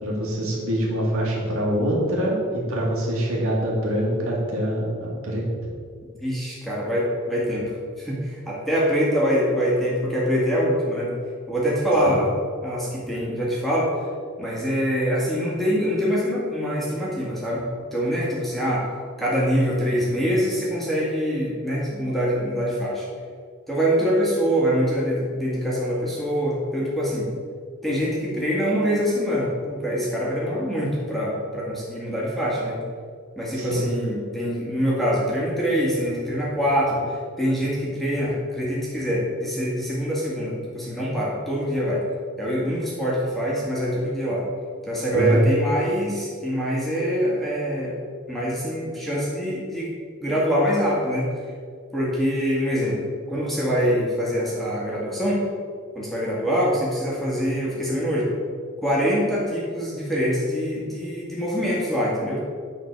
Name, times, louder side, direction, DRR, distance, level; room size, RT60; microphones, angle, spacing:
voice 1, 0.0-5.4 12.0-12.2 33.5-33.8 45.1-45.5, equal, 75° right, -3 dB, 2.4 m, -24 dB
voice 2, 6.2-11.1 11.5-12.3 12.6-13.9 14.4-17.6 17.9-18.9 19.2-23.1 23.7-27.3 27.8-32.8 33.3-42.1 42.4-44.4 44.9-48.0 48.3-49.9 50.2-51.3 51.9-53.0 53.3-55.4 55.9-58.3 58.8-62.4, equal, ahead, -6 dB, 1.9 m, -24 dB
9.9 x 4.1 x 6.6 m, 2.1 s
head